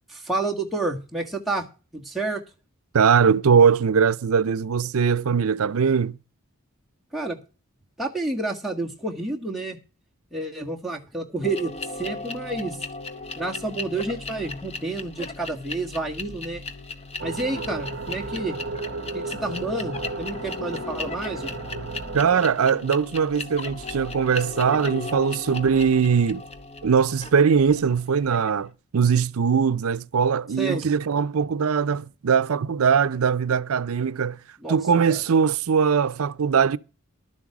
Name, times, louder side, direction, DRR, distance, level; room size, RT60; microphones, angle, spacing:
voice 1, 0.1-1.6 1.9-2.4 7.1-7.4 8.0-9.8 10.3-12.8 13.4-16.6 17.2-18.6 19.1-21.5 30.6-30.9 34.6-34.8 35.1-35.2, right 2 dB, ahead, 1.7 m, -29 dB
voice 2, 2.9-6.2 22.1-26.4 26.8-34.4 34.7-36.8, right 6 dB, 80° right, 0.5 m, -21 dB
sound 1, 11.4-28.6, left 3 dB, 30° left, 0.9 m, -36 dB
sound 2, 17.2-22.5, right 3 dB, 50° right, 0.9 m, -34 dB
12.5 x 7.6 x 6.0 m
head